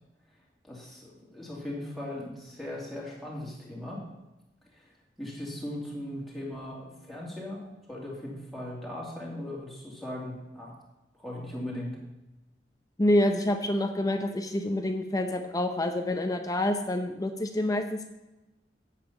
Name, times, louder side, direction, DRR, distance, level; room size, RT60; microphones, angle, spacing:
voice 1, 0.6-4.0 4.7-4.9 5.2-10.7 11.2-11.9, left 1 dB, ahead, -5 dB, 2.7 m, -38 dB
voice 2, 13.0-18.1, left 1 dB, 20° left, 6 dB, 0.7 m, -27 dB
8.6 x 8.4 x 5.8 m, 1.0 s
head